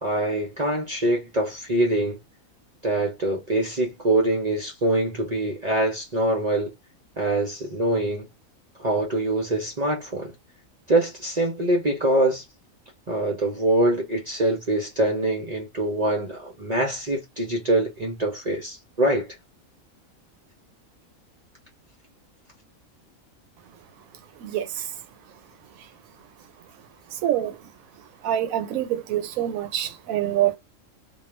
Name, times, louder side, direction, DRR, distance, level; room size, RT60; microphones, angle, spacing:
voice 1, 0.0-2.2 2.8-6.7 7.2-8.3 8.8-10.3 10.9-12.4 13.1-19.3, right 1 dB, 45° right, 0.6 m, -24 dB
voice 2, 24.4-25.0 25.8-25.9 27.1-27.6 28.2-30.6, right 12 dB, 80° right, 1.0 m, -26 dB
2.4 x 2.3 x 2.9 m
omnidirectional pair, 1.4 m